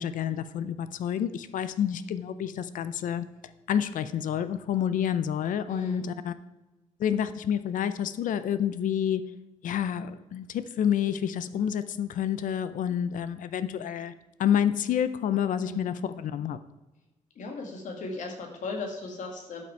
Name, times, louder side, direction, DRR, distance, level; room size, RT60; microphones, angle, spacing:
voice 1, 0.0-3.3 3.7-6.3 7.0-9.2 9.6-14.1 14.4-16.6, left 9 dB, 90° left, 13 dB, 0.6 m, -28 dB
voice 2, 5.7-6.0 15.6-15.9 17.4-19.6, left 3 dB, 70° left, 2 dB, 2.1 m, -37 dB
11.5 x 6.0 x 4.6 m, 1.1 s
wide cardioid pair, 145°, 13 cm